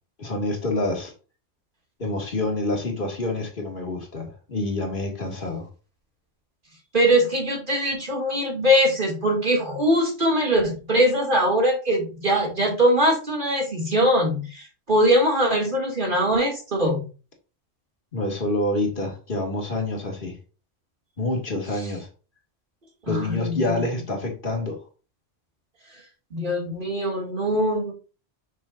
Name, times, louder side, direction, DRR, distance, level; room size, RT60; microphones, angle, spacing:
voice 1, 0.2-1.1 2.0-5.7 18.1-20.3 21.2-22.1 23.1-24.8, left 2 dB, 45° left, 2.0 m, -27 dB
voice 2, 6.9-17.0 23.0-23.8 26.3-27.9, equal, 45° right, 2.4 m, -22 dB
6.4 x 6.2 x 2.5 m
omnidirectional pair, 1.2 m